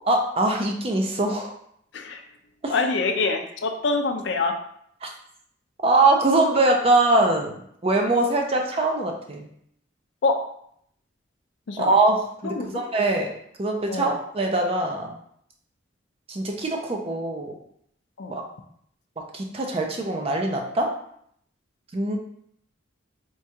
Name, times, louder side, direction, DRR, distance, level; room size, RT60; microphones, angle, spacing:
voice 1, 0.1-1.5 2.6-2.7 5.0-5.1 5.8-7.5 7.8-9.5 11.8-13.3 13.6-15.2 16.3-17.5 18.3-18.4 19.3-20.9 21.9-22.2, right 2 dB, 30° right, 2 dB, 0.5 m, -22 dB
voice 2, 2.7-4.5 10.2-10.4 11.7-11.9 12.4-12.8 13.9-14.2 18.2-18.4, left 3 dB, 60° left, 5 dB, 0.4 m, -25 dB
4.5 x 2.3 x 2.7 m, 0.68 s
head